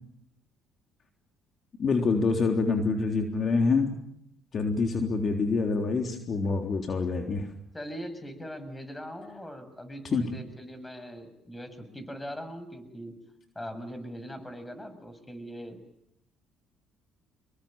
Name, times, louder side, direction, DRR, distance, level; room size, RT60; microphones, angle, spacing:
voice 1, 1.8-4.0 4.5-7.5 10.1-10.2, left 4 dB, 45° left, 4 dB, 3.7 m, -26 dB
voice 2, 7.7-13.2 13.6-15.8, equal, 15° left, 11 dB, 6.9 m, -41 dB
27.0 x 22.0 x 9.0 m, 0.76 s
supercardioid pair, 70°, 0 cm